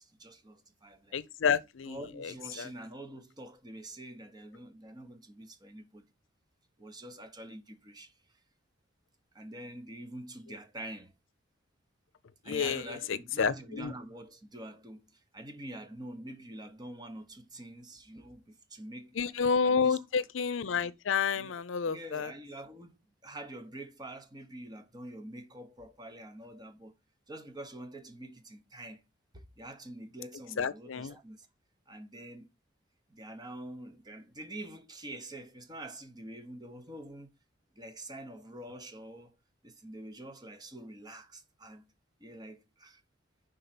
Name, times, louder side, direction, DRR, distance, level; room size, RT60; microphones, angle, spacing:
voice 1, 0.0-1.2 1.9-6.1 6.8-8.1 9.3-11.1 12.4-19.2 19.6-20.0 21.3-21.6 21.8-26.9 27.3-29.0 29.3-31.5 31.9-32.5 33.1-37.3 37.8-39.3 39.6-41.9 42.2-43.0, right 1 dB, 20° right, 0.9 m, -46 dB
voice 2, 1.1-2.7 12.5-13.9 19.2-22.3 30.6-31.1, left 6 dB, 80° left, 0.5 m, -30 dB
5.4 x 3.9 x 5.9 m
head